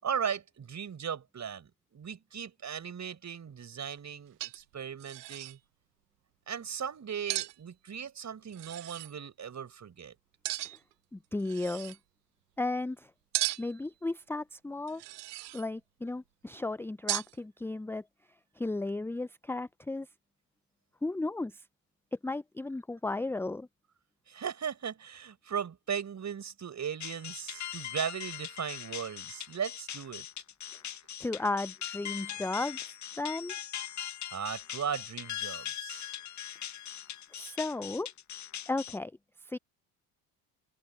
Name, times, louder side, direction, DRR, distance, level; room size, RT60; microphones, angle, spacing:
voice 1, 0.0-5.6 6.5-10.1 24.3-30.3 34.3-36.1, right 7 dB, 35° right, 6.2 m, -37 dB
sound 1, 3.9-4.0 4.4-4.7 5.0-5.6 7.3-7.6 8.5-9.1 10.4-10.9 11.4-12.0 13.3-13.8 14.9-15.7 17.1-17.4, right 17 dB, 75° right, 0.8 m, -36 dB
voice 2, 11.1-12.0 12.6-13.1 13.6-15.0 15.5-18.0 18.6-20.1 21.0-21.6 22.2-23.7 31.2-32.8 33.2-33.5 37.3-38.1 38.7-39.1 39.4-39.6, left 2 dB, 5° left, 0.7 m, -34 dB
sound 2, 27.0-39.0, left 10 dB, 35° left, 1.9 m, -41 dB
open air
figure-of-eight pair, 60°, 47 cm